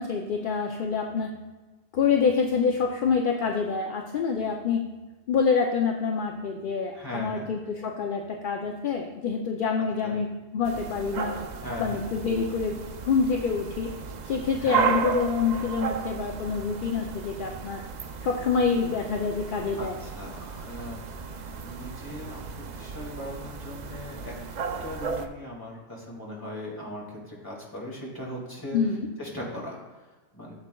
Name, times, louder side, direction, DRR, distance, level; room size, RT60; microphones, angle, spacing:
voice 1, 0.0-1.3 1.9-4.8 5.3-11.4 11.8-12.8 13.1-13.9 14.2-17.8 18.2-19.9 28.7-29.1, left 5 dB, 55° left, 2 dB, 0.6 m, -26 dB
voice 2, 6.9-7.5 10.0-10.2 11.6-12.0 14.6-14.9 19.8-21.0 21.6-24.4 24.8-28.8 29.2-30.5, left 1 dB, 15° left, -4 dB, 2.1 m, -39 dB
sound 1, 10.6-25.3, right 6 dB, 60° right, 0.4 m, -34 dB
13.0 x 7.4 x 2.3 m, 1.2 s
omnidirectional pair, 1.3 m